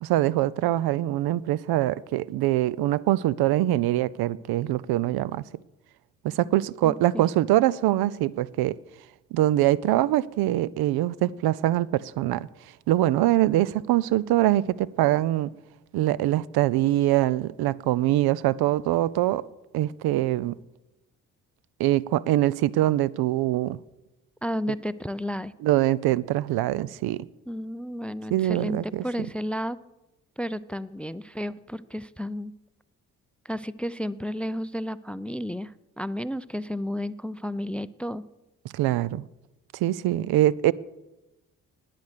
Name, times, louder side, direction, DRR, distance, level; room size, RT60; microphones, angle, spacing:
voice 1, 0.0-5.4 6.2-8.8 9.3-12.5 12.9-15.5 15.9-19.4 19.7-20.6 21.8-23.8 25.6-27.2 28.3-29.0 38.7-39.2 39.7-40.7, right 14 dB, 60° right, 0.6 m, -23 dB
voice 2, 6.8-7.2 24.4-25.5 27.5-29.8 30.4-32.5 33.4-38.2, equal, 5° left, 0.5 m, -32 dB
19.5 x 7.7 x 6.7 m
hypercardioid pair, 40°, 42 cm